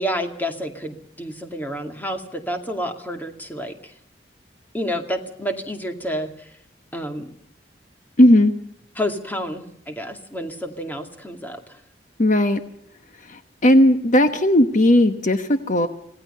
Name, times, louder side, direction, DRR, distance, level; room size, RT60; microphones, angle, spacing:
voice 1, 0.0-3.9 4.7-6.5 6.9-7.3 9.0-11.8, equal, 10° left, 5 dB, 2.3 m, -29 dB
voice 2, 8.2-8.5 12.2-12.6 13.3-15.9, left 1 dB, 45° left, 8 dB, 1.2 m, -16 dB
26.0 x 18.0 x 5.6 m, 0.71 s
head